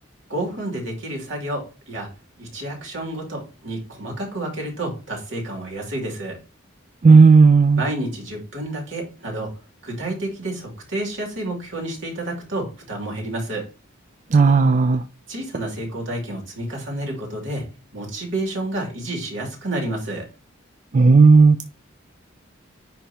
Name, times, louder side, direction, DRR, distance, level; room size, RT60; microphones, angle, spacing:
voice 1, 0.3-2.1 2.4-6.4 7.8-9.5 9.8-13.7 15.3-17.7 17.9-20.3, right 1 dB, 70° right, 0 dB, 2.5 m, -30 dB
voice 2, 7.0-7.8 14.3-15.0 20.9-21.6, right 4 dB, 35° right, 7 dB, 0.4 m, -12 dB
9.7 x 3.5 x 2.9 m, 0.32 s
head